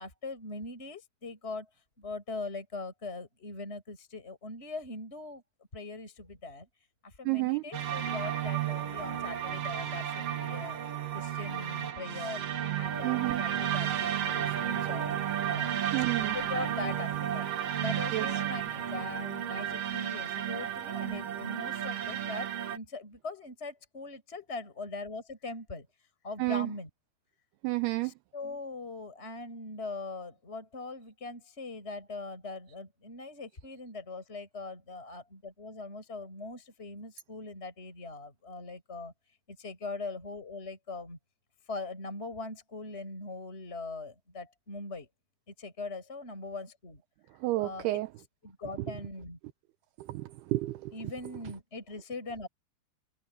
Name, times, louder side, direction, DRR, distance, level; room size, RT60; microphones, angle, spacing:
voice 1, 0.0-1.7 2.0-5.4 5.7-6.7 7.0-10.8 11.1-12.5 12.7-15.7 16.0-17.5 17.8-25.9 26.2-26.9 28.0-39.1 39.5-41.2 41.7-45.1 45.5-47.0 47.6-48.0 48.4-49.4 50.9-52.5, left 3 dB, 15° left, 5.6 m, -41 dB
voice 2, 7.2-7.6 13.0-13.4 15.9-16.4 18.1-18.3 26.4-26.7 27.6-28.1 47.4-48.1 48.8-48.9 50.0-50.9, right 20 dB, 80° right, 2.4 m, -30 dB
sound 1, 7.7-22.8, right 10 dB, 60° right, 1.6 m, -33 dB
omnidirectional pair, 5.2 m